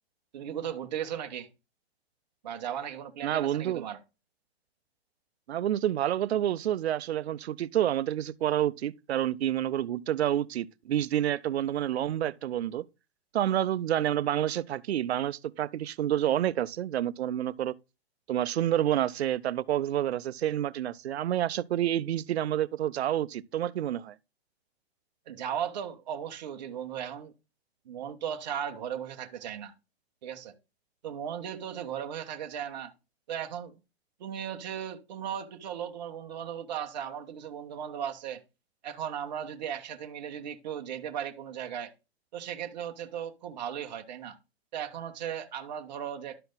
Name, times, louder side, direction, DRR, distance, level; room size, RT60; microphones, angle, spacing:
voice 1, 0.3-1.5 2.4-4.0 25.3-27.3 27.9-29.7 30.2-30.5 31.0-32.9 33.3-33.8 34.2-38.4 38.8-41.9 42.3-44.4 44.7-46.4, right 9 dB, 45° right, 1.1 m, -36 dB
voice 2, 3.2-3.8 5.5-12.8 13.3-17.7 18.3-24.1, right 11 dB, 80° right, 0.6 m, -28 dB
12.0 x 4.5 x 3.9 m
hypercardioid pair, 175°, 32 cm